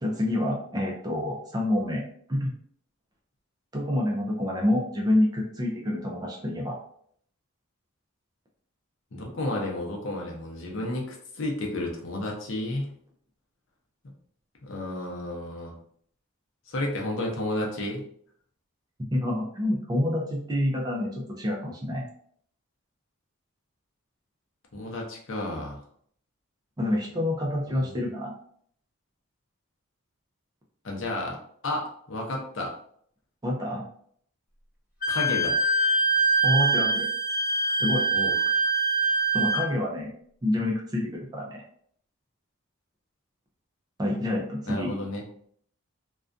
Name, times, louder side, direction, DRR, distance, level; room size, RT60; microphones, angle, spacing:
voice 1, 0.0-2.0 2.3-2.5 3.7-6.8 19.1-22.0 26.8-28.3 33.4-33.9 36.4-37.1 37.7-38.0 39.3-40.1 40.4-41.6 44.0-44.9, left 1 dB, 20° right, -1 dB, 0.4 m, -27 dB
voice 2, 9.1-12.9 14.0-14.1 14.6-15.8 16.7-18.0 24.7-25.8 27.7-27.9 30.8-31.4 31.6-32.7 35.1-35.6 38.1-38.3 44.7-45.2, left 1 dB, 60° left, -1 dB, 0.6 m, -32 dB
Wind instrument woodwind instrument, 35.0-39.7, right 3 dB, 40° left, 1.0 m, -24 dB
2.4 x 2.2 x 2.5 m, 0.63 s
head